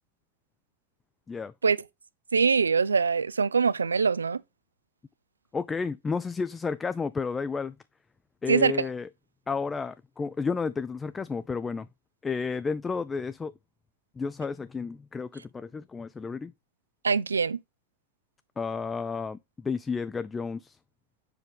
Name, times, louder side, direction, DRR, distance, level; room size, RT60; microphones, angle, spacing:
voice 1, 2.3-4.4 8.5-8.9 17.0-17.6, right 5 dB, 90° right, 0.3 m, -23 dB
voice 2, 5.5-7.7 8.4-9.1 9.5-11.9 12.2-13.5 14.2-16.5 18.6-20.8, left 5 dB, 20° left, 0.4 m, -32 dB
6.2 x 4.9 x 3.4 m
hypercardioid pair, 85°, 0 cm